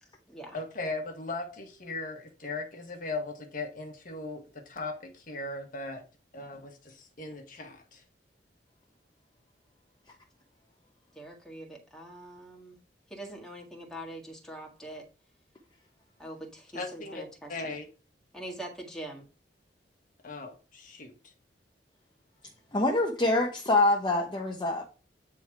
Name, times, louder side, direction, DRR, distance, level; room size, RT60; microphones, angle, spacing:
voice 1, 0.0-0.6 11.2-12.8 13.1-15.1 16.2-17.6 18.3-19.2, right 1 dB, 5° left, 1.7 m, -43 dB
voice 2, 0.5-6.0 6.3-8.0 16.7-17.2 17.5-17.9 20.2-21.1, left 3 dB, 50° left, 1.4 m, -38 dB
voice 3, 22.7-24.8, left 2 dB, 25° left, 1.0 m, -25 dB
9.2 x 3.7 x 4.6 m
head